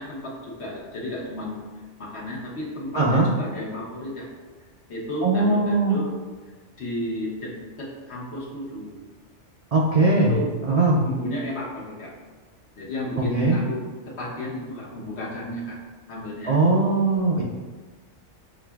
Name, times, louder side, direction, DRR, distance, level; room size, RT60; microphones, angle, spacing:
voice 1, 0.0-1.6 2.0-4.3 4.9-6.1 6.8-9.0 10.1-10.5 11.0-12.1 12.8-15.8 16.1-16.6 17.1-17.2, equal, 65° left, -5 dB, 1.2 m, -33 dB
voice 2, 2.9-3.3 5.2-6.0 9.7-10.3 10.6-11.0 13.2-13.6 16.5-17.4, right 2 dB, 70° right, -4 dB, 0.3 m, -20 dB
6.0 x 2.4 x 2.2 m, 1.3 s
omnidirectional pair, 1.2 m